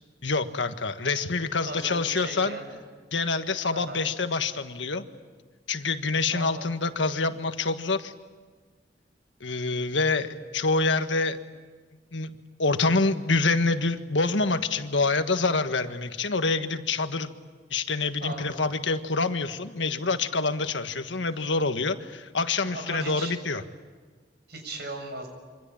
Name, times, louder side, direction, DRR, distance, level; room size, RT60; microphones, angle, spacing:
voice 1, 0.2-2.6 3.1-5.0 5.7-8.1 9.4-11.4 12.1-12.3 12.6-17.3 17.7-23.6, left 3 dB, 90° left, 9 dB, 1.5 m, -26 dB
voice 2, 1.6-2.8 3.7-4.0 6.3-6.6 18.2-18.6 22.6-23.3 24.5-25.3, right 2 dB, 65° right, 5 dB, 7.1 m, -37 dB
27.5 x 25.0 x 8.7 m, 1.5 s
head